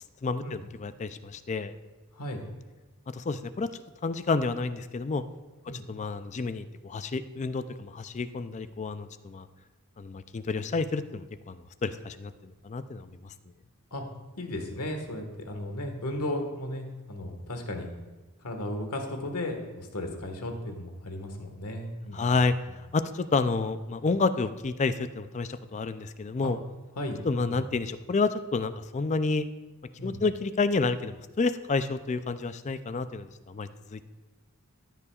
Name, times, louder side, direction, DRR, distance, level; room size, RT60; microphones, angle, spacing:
voice 1, 0.2-1.7 3.1-3.7 4.0-5.2 5.9-9.5 10.0-11.6 11.8-13.1 22.1-22.5 22.9-26.6 27.2-29.5 30.0-34.0, left 4 dB, 30° left, 12 dB, 0.4 m, -29 dB
voice 2, 2.1-2.4 5.7-5.8 13.9-14.0 14.4-17.9 18.4-22.4 26.4-26.5 26.9-27.6 30.0-30.2, left 1 dB, 90° left, 4 dB, 1.6 m, -35 dB
15.0 x 9.7 x 2.4 m, 1.2 s
head